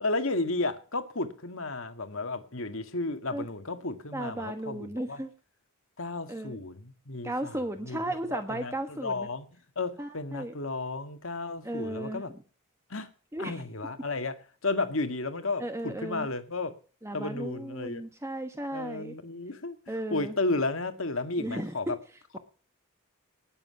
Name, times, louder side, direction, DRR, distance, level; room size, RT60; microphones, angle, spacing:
voice 1, 0.0-5.2 6.0-9.5 9.8-12.3 12.9-13.1 13.4-14.3 14.6-16.7 17.1-18.0 18.7-22.0, left 2 dB, 60° left, 9 dB, 1.9 m, -33 dB
voice 2, 4.1-5.3 6.3-6.6 7.2-9.3 10.0-10.5 11.6-12.2 13.3-13.6 15.6-16.3 17.0-19.1 19.9-20.3 21.4-21.7, right 1 dB, 10° right, 7 dB, 1.2 m, -35 dB
19.0 x 7.9 x 5.9 m, 0.40 s
head